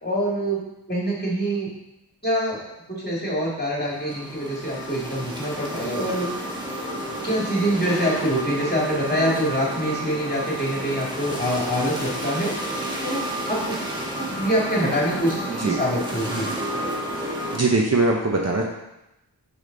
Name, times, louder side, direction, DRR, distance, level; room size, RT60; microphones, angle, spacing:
voice 1, 0.0-0.6 0.9-1.7 2.2-2.6 2.9-6.5 7.2-12.5 13.0-13.8 14.2-16.5, equal, 20° left, -4 dB, 2.1 m, -25 dB
sound 1, 3.8-17.6, right 1 dB, 10° right, 1.2 m, -31 dB
voice 2, 17.5-18.6, right 3 dB, 35° right, 0 dB, 0.8 m, -21 dB
5.1 x 5.0 x 3.9 m, 0.89 s
wide cardioid pair, 50°, 43 cm